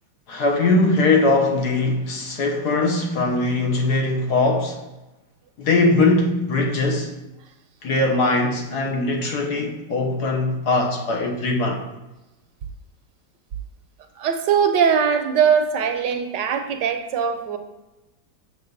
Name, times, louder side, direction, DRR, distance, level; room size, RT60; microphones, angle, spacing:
voice 1, 0.3-4.8 5.6-7.1 7.8-11.8, left 2 dB, 65° left, 1.6 m, -21 dB
voice 2, 14.2-17.6, right 7 dB, 75° right, 1.3 m, -21 dB
6.7 x 6.7 x 3.9 m
omnidirectional pair, 2.0 m